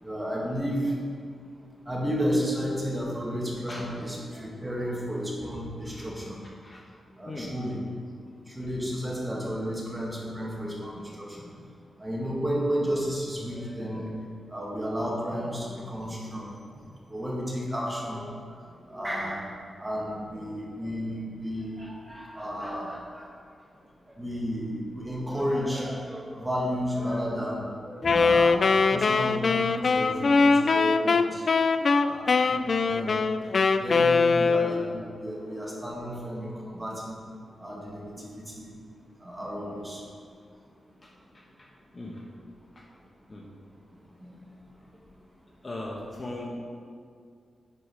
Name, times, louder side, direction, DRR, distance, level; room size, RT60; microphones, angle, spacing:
voice 1, 0.0-0.9 1.9-6.4 7.2-7.8 8.6-11.5 12.0-14.1 14.5-16.5 17.1-18.4 18.9-19.5 19.8-23.3 24.2-28.6 28.9-31.4 32.0-32.4 32.9-33.1 33.8-37.2 37.6-38.7 39.2-40.0 44.2-44.3, equal, 10° right, -4 dB, 1.9 m, -32 dB
Wind instrument woodwind instrument, 28.0-35.0, left 4 dB, 50° left, 0.3 m, -22 dB
voice 2, 41.0-41.7 41.9-42.2 42.7-42.8 43.3-43.5 45.6-46.5, left 2 dB, 30° left, -2 dB, 1.1 m, -39 dB
9.9 x 5.0 x 4.9 m, 2.2 s
wide cardioid pair, 100°, 0 cm